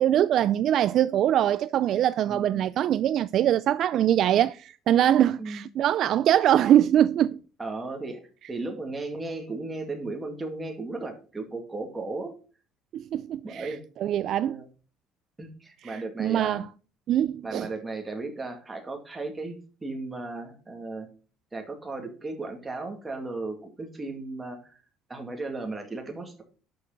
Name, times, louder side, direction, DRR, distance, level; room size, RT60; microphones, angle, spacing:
voice 1, 0.0-7.4 12.9-13.7 14.0-14.6 15.8-16.7 17.1-17.7, right 11 dB, 50° right, 0.3 m, -23 dB
voice 2, 2.3-2.6 5.4-5.6 7.6-8.2 8.5-12.3 13.4-13.8 14.4-14.7 15.4-16.6 17.4-19.6 19.8-21.1 21.5-24.8 25.1-26.4, right 3 dB, 15° right, 2.3 m, -35 dB
11.0 x 6.6 x 3.9 m
cardioid pair, 155°, 0 cm